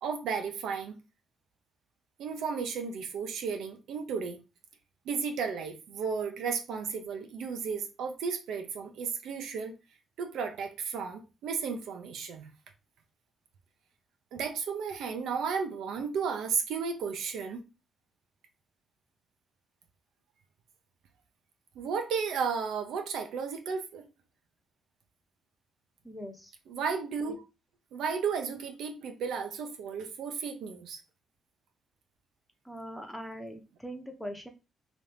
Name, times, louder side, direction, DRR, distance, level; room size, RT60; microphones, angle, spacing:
voice 1, 0.0-1.0 2.2-4.4 5.1-9.7 10.2-12.5 14.3-17.6 21.7-24.0 26.7-27.4 27.9-31.0, right 6 dB, 80° right, 0.7 m, -33 dB
voice 2, 26.0-26.5 32.7-34.5, equal, 5° left, 0.8 m, -41 dB
3.0 x 2.6 x 3.3 m
cardioid pair, 90°, 0 cm